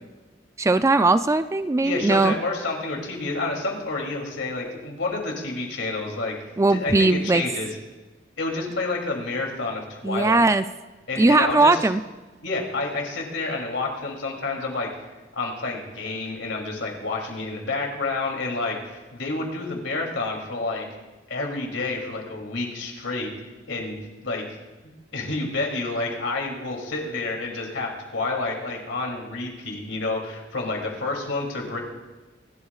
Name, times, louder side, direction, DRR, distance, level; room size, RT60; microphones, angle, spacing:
voice 1, 0.6-2.3 6.6-7.4 10.0-10.6 11.2-12.0, right 2 dB, 15° right, 11 dB, 0.3 m, -19 dB
voice 2, 1.8-6.3 6.7-7.7 8.4-10.5 11.1-11.8 12.4-14.9 15.3-20.9 21.3-23.3 23.7-23.9 24.2-24.4 24.8-31.8, left 3 dB, 85° left, 1 dB, 2.9 m, -29 dB
25.5 x 12.0 x 2.4 m, 1.2 s
head